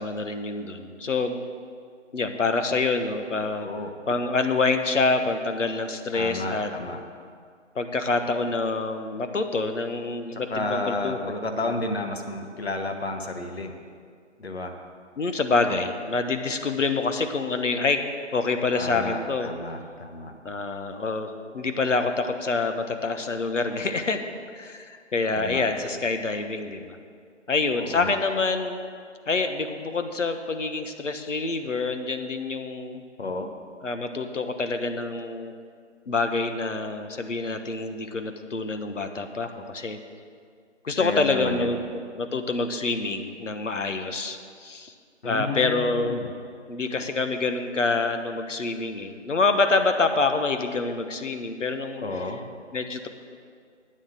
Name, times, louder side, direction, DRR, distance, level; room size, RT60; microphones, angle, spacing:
voice 1, 0.0-1.4 2.1-3.7 4.1-6.7 7.7-11.3 11.6-11.7 15.2-18.0 18.3-19.5 20.4-24.2 24.5-27.0 27.5-28.8 29.3-33.0 33.8-35.5 36.1-40.0 40.8-44.9 45.2-46.3 46.7-52.0 52.7-53.1, left 3 dB, 85° left, 7 dB, 1.2 m, -26 dB
voice 2, 3.6-3.9 6.1-7.0 10.3-13.7 14.4-14.8 18.8-20.3 25.3-25.7 27.8-28.2 33.2-33.5 41.0-41.7 45.2-46.3 52.0-52.4, left 2 dB, 55° left, 5 dB, 1.2 m, -31 dB
9.0 x 7.6 x 7.3 m, 2.1 s
figure-of-eight pair, 180°, 36 cm